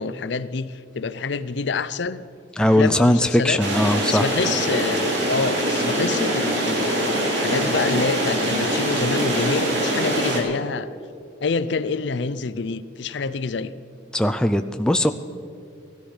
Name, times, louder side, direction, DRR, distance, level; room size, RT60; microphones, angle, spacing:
voice 1, 0.0-2.2 2.6-3.6 4.1-10.9 11.4-13.7, left 4 dB, 60° left, 15 dB, 0.5 m, -27 dB
voice 2, 2.6-4.3 14.1-15.1, left 1 dB, 5° left, 7 dB, 0.3 m, -19 dB
sound 1, 3.6-10.4, right 1 dB, 60° right, 3.0 m, -23 dB
18.0 x 13.0 x 5.7 m, 2.5 s
head